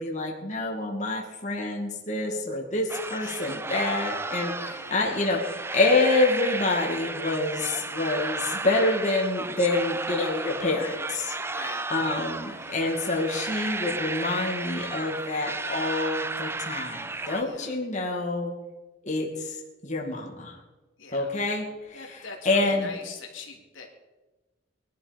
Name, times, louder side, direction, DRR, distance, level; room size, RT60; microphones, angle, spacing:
voice 1, 0.0-11.3 11.9-18.5 19.0-20.6 21.1-22.2 22.5-22.9, left 2 dB, 35° left, -1 dB, 2.4 m, -27 dB
sound 1, 2.9-17.4, right 3 dB, 10° right, 0.4 m, -33 dB
voice 2, 3.1-3.6 4.5-4.9 11.3-11.9 12.4-12.8 17.4-17.8 21.0-21.3 21.9-23.9, left 4 dB, 80° left, 1 dB, 3.1 m, -43 dB
21.5 x 12.0 x 5.3 m, 1.1 s
head